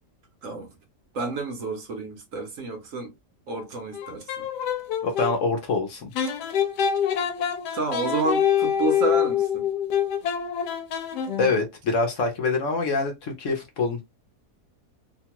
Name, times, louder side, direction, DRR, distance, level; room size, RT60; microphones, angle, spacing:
voice 1, 1.1-3.1 3.5-4.2 7.7-9.7, right 2 dB, 65° right, 1.0 m, -29 dB
sound 1, 3.9-5.3 6.2-11.6, left 9 dB, 85° left, 1.2 m, -25 dB
voice 2, 5.0-6.1 11.4-14.0, left 3 dB, 60° left, 0.9 m, -25 dB
2.8 x 2.2 x 2.8 m
omnidirectional pair, 1.7 m